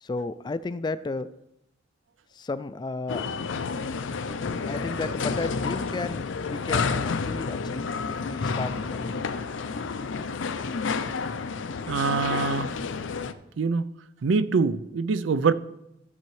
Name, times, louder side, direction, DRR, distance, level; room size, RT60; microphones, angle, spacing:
voice 1, 0.0-1.3 2.3-3.2 4.7-9.5 9.9-10.2, left 3 dB, 25° left, 0.3 m, -34 dB
sound 1, 3.1-13.3, left 4 dB, 85° left, 0.5 m, -30 dB
voice 2, 11.9-12.7 13.6-13.8 14.2-15.5, right 4 dB, 85° right, 0.5 m, -24 dB
13.5 x 7.7 x 3.2 m
head